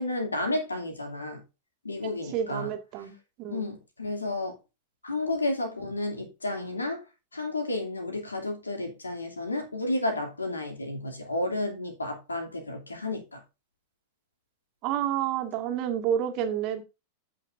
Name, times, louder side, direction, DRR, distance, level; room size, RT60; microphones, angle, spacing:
voice 1, 0.0-1.4 1.8-2.7 3.0-3.1 3.5-4.6 5.0-7.0 7.3-13.4, left 2 dB, 80° left, 2.7 m, -32 dB
voice 2, 2.3-3.7 14.8-16.8, right 10 dB, 40° right, 1.9 m, -29 dB
15.0 x 5.6 x 2.6 m
figure-of-eight pair, 90°, 0 cm